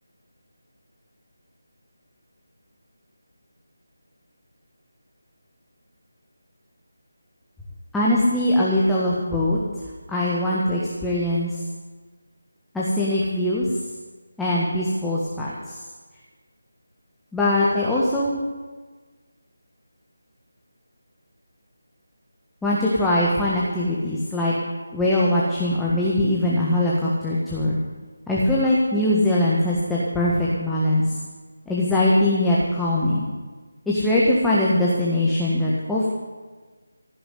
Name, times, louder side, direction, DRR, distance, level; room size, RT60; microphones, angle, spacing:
voice 1, 7.9-9.6 10.1-11.6 12.7-13.7 14.4-15.8 17.3-18.4 22.6-24.5 24.9-27.8 28.3-31.0 31.7-33.3 33.9-36.1, left 1 dB, 5° left, -8 dB, 1.5 m, -21 dB
16.0 x 6.9 x 9.3 m, 1.4 s
figure-of-eight pair, 160°, 0 cm